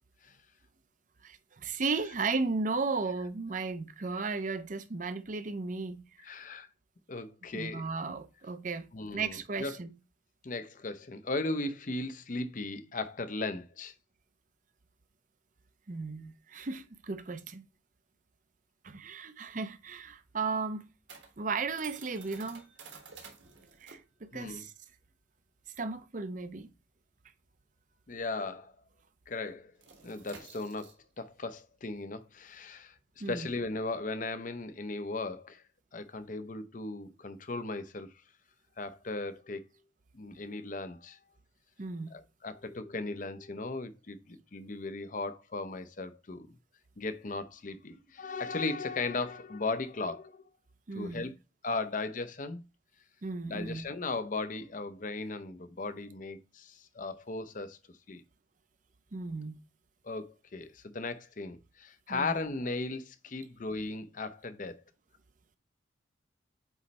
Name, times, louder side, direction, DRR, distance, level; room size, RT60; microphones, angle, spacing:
voice 1, 1.2-6.0 7.5-8.9 9.1-9.9 15.9-17.6 18.8-20.8 21.4-22.6 23.8-24.7 25.8-26.7 33.2-33.5 41.8-42.1 50.9-51.3 53.2-53.8 59.1-59.6 62.1-62.3, right 4 dB, 40° right, 0.6 m, -35 dB
voice 2, 6.2-6.7 7.1-7.8 8.9-9.7 10.4-13.9 24.3-24.7 28.1-28.8 29.3-29.7 30.0-35.6 35.9-38.1 38.8-39.7 40.1-41.2 42.1-46.6 47.0-50.4 50.9-51.3 51.6-52.6 53.5-57.8 58.1-58.2 60.0-64.8, left 3 dB, 40° left, 0.6 m, -37 dB
sound 1, 19.6-28.5 28.8-29.0 29.3-35.1, right 5 dB, 70° right, 1.5 m, -54 dB
8.1 x 3.2 x 4.2 m
head